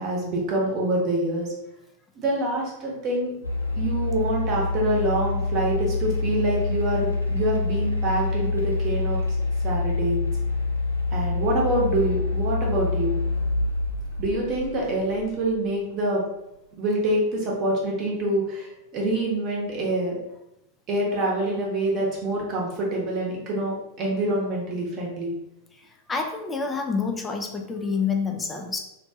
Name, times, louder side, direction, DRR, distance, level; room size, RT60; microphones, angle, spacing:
voice 1, 0.0-1.5 2.2-3.3 3.7-9.2 9.6-10.2 11.1-13.2 14.2-16.2 16.8-20.2 20.9-25.3, right 1 dB, 35° right, -3 dB, 0.8 m, -26 dB
sound 1, 3.4-15.7, left 3 dB, 85° right, 0.4 m, -26 dB
voice 2, 25.7-28.8, left 5 dB, 15° left, 2 dB, 0.4 m, -28 dB
2.6 x 2.2 x 2.7 m, 0.86 s
figure-of-eight pair, 90°, 0 cm